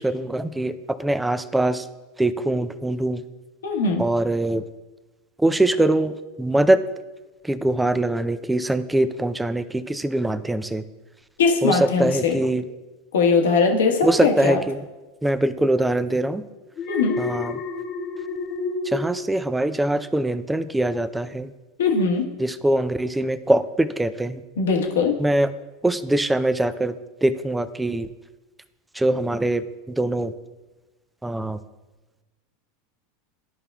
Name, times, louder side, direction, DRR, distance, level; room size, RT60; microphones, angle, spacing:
voice 1, 0.0-1.9 2.2-3.2 4.0-4.6 5.4-6.1 6.4-6.8 7.4-10.8 11.6-12.6 14.0-14.8 15.2-16.4 17.2-17.6 18.8-21.5 22.4-24.4 25.2-25.5 25.8-26.9 27.2-28.1 28.9-29.6 30.0-30.3 31.2-31.6, right 1 dB, 10° right, 13 dB, 0.4 m, -22 dB
voice 2, 3.6-4.0 11.4-12.3 13.1-14.6 16.9-17.2 21.8-22.3 24.6-25.1, left 4 dB, 75° left, 2 dB, 1.2 m, -20 dB
Alarm, 16.8-20.1 20.5-20.8, left 3 dB, 35° left, 1.0 m, -30 dB
12.5 x 5.4 x 2.3 m, 1.1 s
hypercardioid pair, 90°, 0 cm